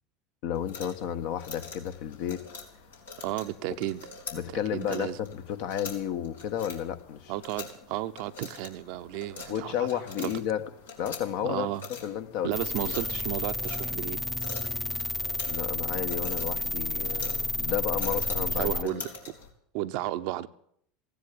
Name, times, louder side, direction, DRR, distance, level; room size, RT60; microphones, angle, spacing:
voice 1, 0.4-2.6 4.3-7.3 9.5-10.6 11.0-11.7 12.0-12.9 14.6-14.8 15.5-19.1, left 10 dB, 65° left, 1.3 m, -32 dB
sound 1, 0.5-19.5, left 4 dB, 85° left, 3.0 m, -45 dB
voice 2, 3.2-4.0 4.7-5.2 7.3-10.3 11.4-11.9 12.4-14.2 18.3-19.1 19.7-20.5, right 14 dB, 65° right, 0.8 m, -33 dB
sound 2, 12.5-18.8, left 1 dB, 10° left, 0.7 m, -31 dB
15.5 x 10.0 x 8.5 m
hypercardioid pair, 80°, 0 cm